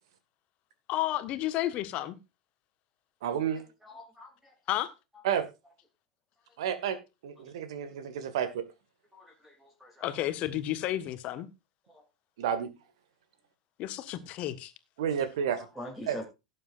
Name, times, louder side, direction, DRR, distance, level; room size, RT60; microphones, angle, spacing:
voice 1, 0.9-2.1 4.7-4.9 10.0-11.5 13.8-14.7, left 14 dB, 40° left, 1.5 m, -31 dB
voice 2, 3.2-3.6 5.2-5.5 6.6-7.0 7.2-8.6 12.4-12.7 15.0-15.7 16.1-16.2, right 8 dB, 55° right, 1.9 m, -30 dB
voice 3, 3.8-4.5 9.1-10.1 11.9-12.0 15.7-16.2, left 1 dB, 5° right, 3.1 m, -44 dB
17.5 x 7.7 x 2.6 m
figure-of-eight pair, 85°, 3 cm